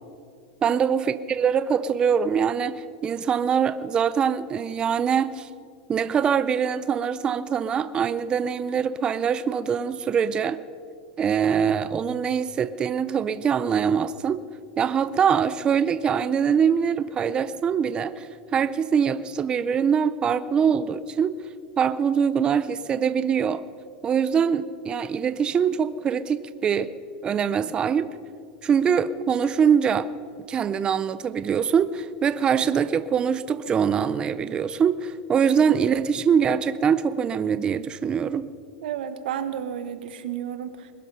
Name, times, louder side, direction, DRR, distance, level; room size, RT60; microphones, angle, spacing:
voice 1, 0.6-5.5 5.9-10.6 11.2-14.4 14.8-21.3 21.8-23.6 24.0-26.9 27.2-28.1 28.6-30.1 30.5-38.5, right 7 dB, 20° right, 14 dB, 0.4 m, -23 dB
voice 2, 38.8-40.9, right 9 dB, 85° right, 11 dB, 1.2 m, -32 dB
21.0 x 12.0 x 5.4 m, 2.2 s
supercardioid pair, 160°, 5 cm